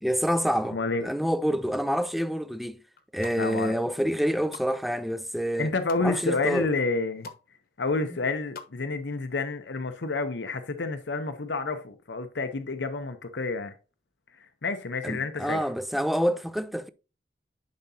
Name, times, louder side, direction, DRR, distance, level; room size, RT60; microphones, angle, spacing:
voice 1, 0.0-2.8 3.1-5.7 6.0-6.7 15.0-16.9, equal, ahead, 0.4 m, -27 dB
voice 2, 0.7-1.1 3.3-3.7 5.6-7.3 7.8-13.7 14.6-15.6, left 3 dB, 80° left, 0.8 m, -29 dB
sound 1, 2.9-3.4 4.0-4.7 5.1-6.1 6.6-6.7 6.9-7.5 7.7-8.7 9.0-9.1, left 4 dB, 55° left, 1.1 m, -45 dB
10.5 x 5.2 x 2.8 m
head